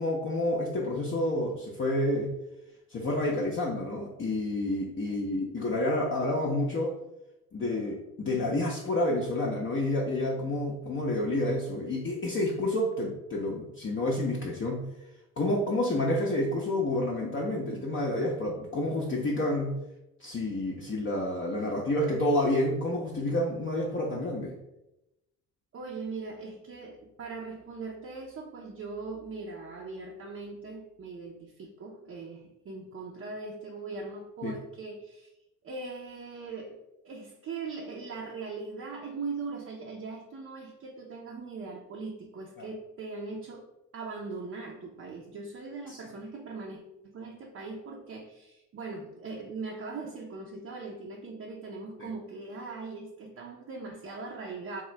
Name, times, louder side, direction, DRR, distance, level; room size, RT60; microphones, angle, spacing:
voice 1, 0.0-2.3 2.9-7.0 7.5-14.9 15.4-19.7 20.2-24.6 34.4-34.6 42.6-42.7 45.9-46.0 52.0-52.1, left 1 dB, 30° left, -2 dB, 0.6 m, -29 dB
voice 2, 25.7-35.3 35.6-36.8 37.0-43.7 43.9-46.8 47.1-54.8, right 4 dB, 35° right, -1 dB, 0.6 m, -40 dB
3.6 x 2.4 x 3.1 m, 0.92 s
hypercardioid pair, 50°, 43 cm